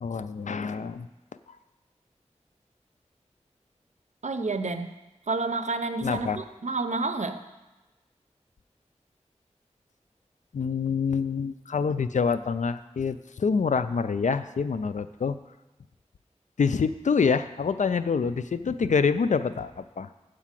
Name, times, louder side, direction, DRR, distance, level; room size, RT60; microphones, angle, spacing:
voice 1, 0.0-1.1 6.0-6.4 10.5-15.4 16.6-20.1, left 5 dB, 90° left, 12 dB, 0.4 m, -26 dB
voice 2, 4.2-4.9 5.3-7.4, right 3 dB, 75° right, 9 dB, 0.6 m, -29 dB
8.3 x 5.0 x 7.4 m, 1.1 s
wide cardioid pair, 65°, 12 cm